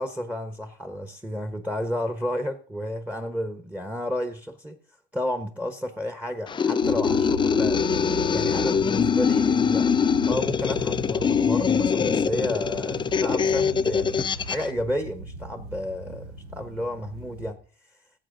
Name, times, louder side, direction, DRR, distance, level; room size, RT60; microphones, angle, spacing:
voice 1, 0.0-4.8 5.1-7.8 8.3-9.9 10.3-14.2 14.5-17.6, left 1 dB, 10° right, 9 dB, 1.1 m, -31 dB
sound 1, 6.5-14.7, left 6 dB, 20° left, 0.4 m, -23 dB
sound 2, 6.8-17.5, right 1 dB, 90° right, 2.0 m, -39 dB
17.0 x 7.9 x 3.8 m, 0.39 s
cardioid pair, 110°, 21 cm